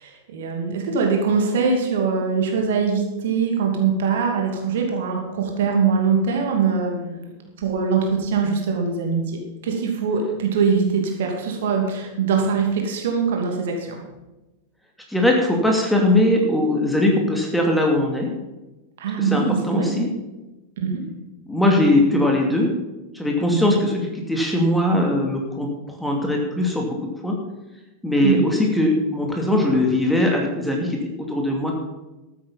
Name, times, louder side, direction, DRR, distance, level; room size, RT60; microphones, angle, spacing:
voice 1, 0.0-7.3 7.6-14.0 19.0-19.9 20.8-21.0 23.5-23.8 28.2-28.5, right 5 dB, 55° right, 2 dB, 2.6 m, -22 dB
voice 2, 15.1-18.3 19.2-20.1 21.5-22.7 23.1-27.4 28.0-31.0 31.3-31.7, left 1 dB, 5° left, 0 dB, 2.5 m, -20 dB
13.5 x 9.0 x 5.7 m, 1.0 s
figure-of-eight pair, 90°, 0 cm